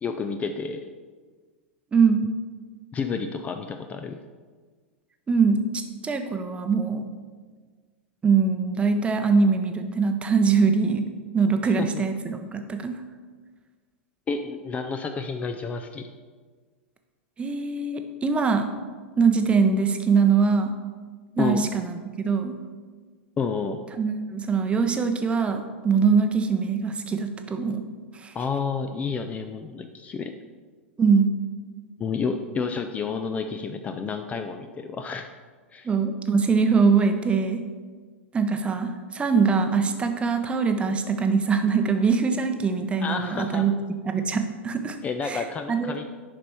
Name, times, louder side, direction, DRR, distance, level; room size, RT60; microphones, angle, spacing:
voice 1, 0.0-0.8 2.9-4.2 11.8-12.0 14.3-16.1 21.4-21.7 23.4-23.9 28.3-30.3 32.0-35.3 35.7-35.9 43.0-43.6 45.0-46.1, left 5 dB, 20° left, 6 dB, 0.4 m, -30 dB
voice 2, 1.9-2.3 5.3-5.6 6.0-7.0 8.2-11.0 11.3-13.0 17.4-18.7 19.2-20.7 21.4-22.5 24.0-27.8 28.1-28.3 31.0-31.3 35.8-37.6 38.3-43.7 44.0-45.0 45.2-45.9, right 5 dB, 15° right, 6 dB, 0.7 m, -22 dB
7.3 x 5.3 x 4.3 m, 1.5 s
figure-of-eight pair, 90°, 7 cm